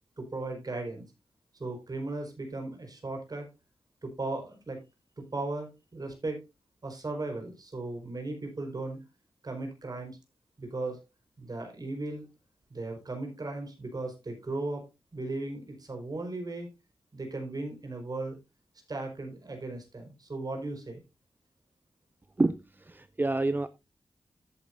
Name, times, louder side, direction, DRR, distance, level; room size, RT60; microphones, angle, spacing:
voice 1, 0.2-1.1 1.6-3.5 4.0-4.8 5.2-6.4 6.8-9.0 9.4-10.2 10.6-11.0 11.4-12.2 12.7-14.8 15.1-16.7 17.1-18.4 18.9-21.0, right 2 dB, 45° right, 4.7 m, -36 dB
voice 2, 22.4-23.7, right 2 dB, 20° right, 0.5 m, -28 dB
13.5 x 8.7 x 2.6 m
wide cardioid pair, 80°, 9 cm